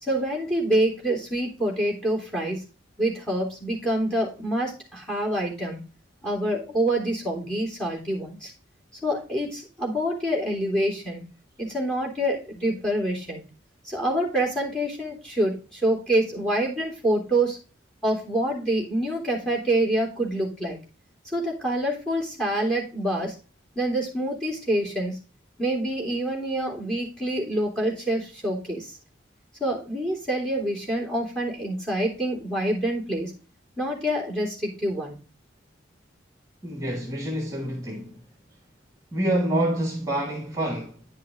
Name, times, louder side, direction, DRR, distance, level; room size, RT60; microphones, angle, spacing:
voice 1, 0.0-2.6 3.0-5.8 6.2-8.5 9.0-11.2 11.6-13.4 13.8-17.6 18.0-20.8 21.3-23.3 23.7-25.2 25.6-28.9 29.6-33.3 33.8-35.2, right 1 dB, 5° left, 3.3 m, -26 dB
voice 2, 36.6-38.2 39.1-41.0, right 1 dB, 15° right, 1.5 m, -27 dB
10.5 x 5.8 x 3.6 m
head